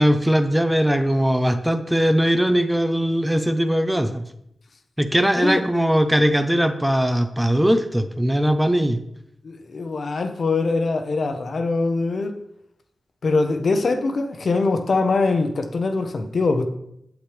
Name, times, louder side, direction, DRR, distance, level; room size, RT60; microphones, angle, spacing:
voice 1, 0.0-4.2 5.0-9.0, equal, 5° right, 8 dB, 0.7 m, -20 dB
voice 2, 9.4-12.4 13.2-16.7, left 3 dB, 65° left, 6 dB, 1.0 m, -22 dB
8.6 x 7.6 x 3.4 m, 0.76 s
cardioid pair, 65°, 0 cm